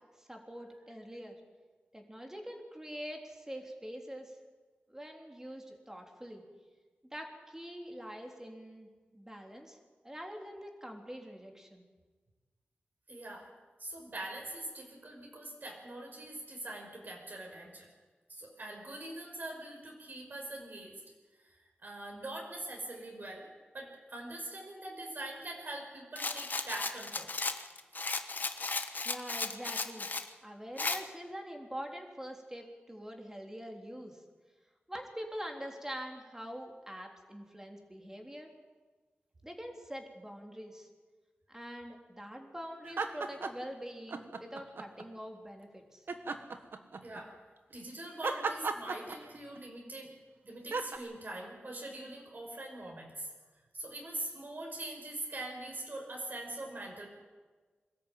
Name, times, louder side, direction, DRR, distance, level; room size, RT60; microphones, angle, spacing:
voice 1, 0.2-1.4 1.9-4.4 4.9-6.4 7.1-9.8 10.0-11.9 29.0-30.1 30.4-34.2 34.9-38.5 39.4-40.9 41.5-46.1, equal, 15° right, 2 dB, 3.6 m, -44 dB
voice 2, 13.1-13.5 13.8-17.9 18.3-21.0 21.3-23.5 23.7-27.3 47.0-47.3 47.7-50.1 50.4-53.3 53.7-57.1, right 1 dB, 55° right, 0 dB, 5.5 m, -43 dB
Rattle, 26.2-30.3 30.8-31.0, left 3 dB, 50° left, 1.3 m, -35 dB
sound 1, 42.8-43.7 44.1-45.1 46.1-47.2 48.2-49.6 50.7-51.0, right 4 dB, 75° right, 1.5 m, -35 dB
22.0 x 13.5 x 9.2 m, 1.4 s
cardioid pair, 60°, 4 cm